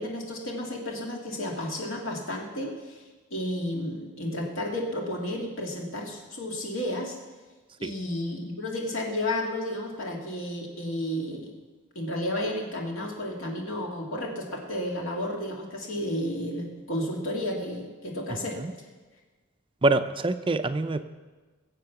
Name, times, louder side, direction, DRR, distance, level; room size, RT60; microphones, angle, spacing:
voice 1, 0.0-3.0 3.3-7.2 7.8-11.6 12.0-18.6, left 1 dB, 65° left, 0 dB, 2.2 m, -32 dB
voice 2, 18.3-18.7 19.8-21.1, right 2 dB, 25° right, 10 dB, 0.5 m, -26 dB
21.5 x 7.7 x 5.9 m, 1.3 s
head